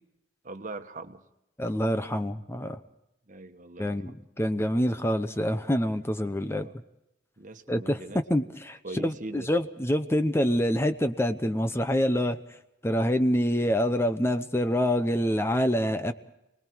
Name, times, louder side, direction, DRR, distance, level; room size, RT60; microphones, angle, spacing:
voice 1, 0.4-1.2 3.3-3.9 6.5-6.7 7.4-8.2 8.5-8.6 8.8-9.5, right 2 dB, 45° right, 7 dB, 1.4 m, -41 dB
voice 2, 1.6-2.8 3.8-6.7 7.7-12.4 12.8-16.1, equal, 15° left, 9 dB, 0.9 m, -26 dB
29.5 x 20.5 x 4.6 m, 0.86 s
head